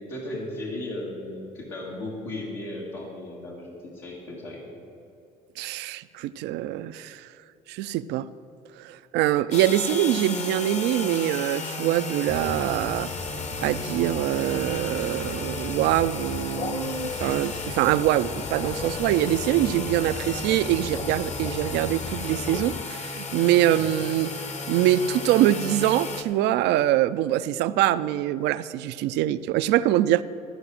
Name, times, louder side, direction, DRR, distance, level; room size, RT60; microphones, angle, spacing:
voice 1, 0.1-4.8 20.2-20.4 23.7-24.0, left 1 dB, 75° left, -4 dB, 2.0 m, -36 dB
voice 2, 5.6-7.3 7.7-8.3 8.8-13.1 13.6-24.3 24.7-30.2, right 13 dB, 70° right, 15 dB, 0.4 m, -24 dB
sound 1, 9.5-26.2, left 3 dB, 40° left, 1.1 m, -34 dB
sound 2, 12.3-22.8, left 5 dB, 25° left, 0.4 m, -37 dB
14.5 x 4.8 x 7.5 m, 2.7 s
supercardioid pair, 70°, 18 cm